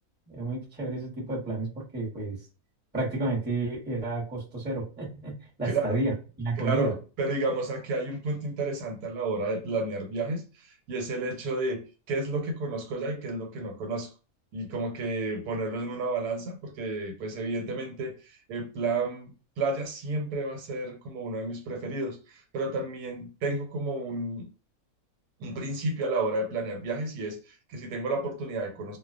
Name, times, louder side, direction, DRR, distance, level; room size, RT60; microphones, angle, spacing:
voice 1, 0.3-2.4 2.9-6.1 6.4-6.9, right 2 dB, 10° right, 0.7 m, -31 dB
voice 2, 6.6-14.1 14.5-24.5 25.4-29.0, right 2 dB, 85° right, 1.2 m, -31 dB
2.4 x 2.1 x 2.3 m
omnidirectional pair, 1.6 m